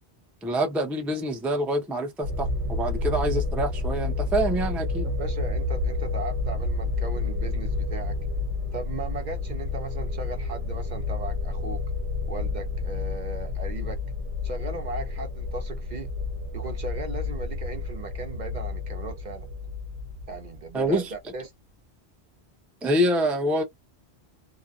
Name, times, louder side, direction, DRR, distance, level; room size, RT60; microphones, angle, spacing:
voice 1, 0.4-5.1 20.7-21.1 22.8-23.6, right 1 dB, ahead, 0.4 m, -26 dB
sound 1, 2.2-21.1, left 3 dB, 80° right, 0.9 m, -30 dB
voice 2, 5.2-8.2 8.7-11.8 12.3-14.0 14.4-16.1 16.5-19.5 20.3-21.5, right 3 dB, 55° right, 0.6 m, -37 dB
2.8 x 2.0 x 2.3 m
omnidirectional pair, 1.1 m